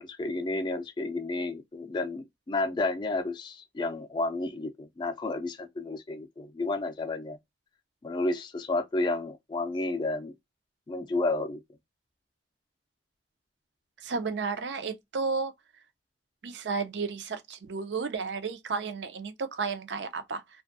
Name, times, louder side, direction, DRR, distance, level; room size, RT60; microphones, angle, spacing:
voice 1, 0.0-7.4 8.0-10.3 10.9-11.6, left 2 dB, 25° left, 0.3 m, -31 dB
voice 2, 14.0-15.5 16.4-20.4, right 4 dB, 85° right, 0.5 m, -32 dB
2.6 x 2.2 x 2.5 m
head